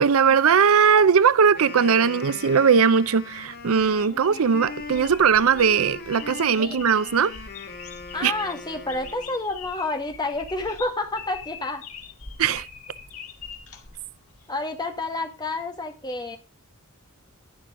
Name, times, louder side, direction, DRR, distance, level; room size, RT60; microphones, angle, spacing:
voice 1, 0.0-7.3 8.2-8.3 12.4-12.7, right 6 dB, 65° right, 0.5 m, -19 dB
Wind instrument woodwind instrument, 1.4-9.5, left 4 dB, 45° left, 1.9 m, -40 dB
sound 1, 3.6-14.5, left 6 dB, 70° left, 2.1 m, -43 dB
voice 2, 8.1-11.8 14.5-16.4, left 2 dB, 20° left, 1.8 m, -29 dB
11.0 x 11.0 x 3.7 m
head